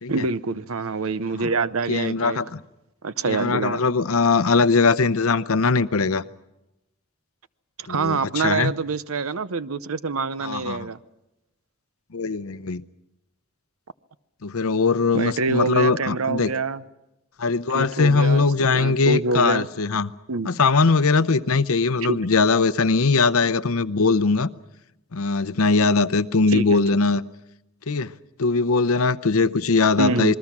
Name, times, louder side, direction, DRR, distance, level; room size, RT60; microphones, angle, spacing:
voice 1, 0.1-2.4 3.0-3.8 7.8-11.0 15.1-16.8 17.7-18.5 18.7-19.7 20.3-20.5 22.1-22.2 26.5-26.8 30.0-30.4, right 3 dB, 80° right, 15 dB, 0.8 m, -25 dB
voice 2, 1.9-2.6 3.3-6.2 7.9-8.7 10.4-10.9 12.1-12.8 14.4-16.5 17.4-20.1 20.4-24.5 25.1-27.2 27.9-28.1 28.4-30.4, left 4 dB, 85° left, 14 dB, 0.7 m, -20 dB
27.5 x 21.5 x 6.0 m, 0.93 s
head